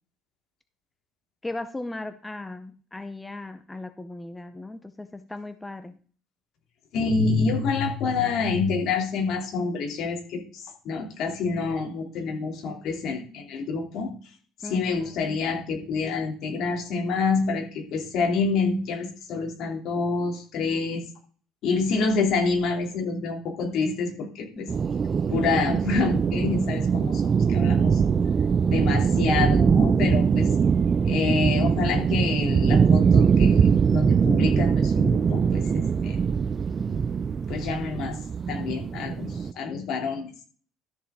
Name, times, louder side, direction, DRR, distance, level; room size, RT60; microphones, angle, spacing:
voice 1, 1.4-6.0 14.6-14.9 24.6-24.8, left 2 dB, 10° left, 10 dB, 0.7 m, -37 dB
voice 2, 6.9-14.1 14.6-21.0 21.6-24.7 25.3-28.0 28.6-30.5 31.0-36.2 37.5-38.2 38.5-40.3, left 4 dB, 65° left, 2 dB, 2.9 m, -27 dB
sound 1, 24.7-39.5, right 6 dB, 35° right, 0.4 m, -22 dB
13.0 x 6.9 x 3.7 m, 0.42 s
cardioid pair, 110°, 0 cm